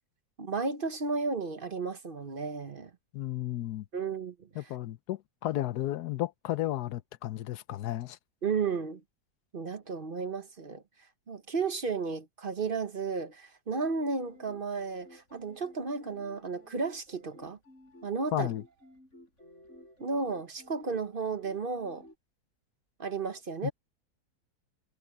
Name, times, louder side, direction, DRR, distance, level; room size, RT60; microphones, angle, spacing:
voice 1, 0.4-2.9 3.9-4.5 8.4-9.0 9.5-10.8 11.3-17.6 18.0-18.5 20.0-22.0 23.0-23.7, right 4 dB, 40° right, 1.0 m, -33 dB
voice 2, 3.1-3.8 4.6-8.2 18.3-18.6 23.6-23.7, left 14 dB, 85° left, 1.3 m, -33 dB
sound 1, 14.0-22.2, left 1 dB, 50° left, 6.7 m, -55 dB
omnidirectional pair, 1.7 m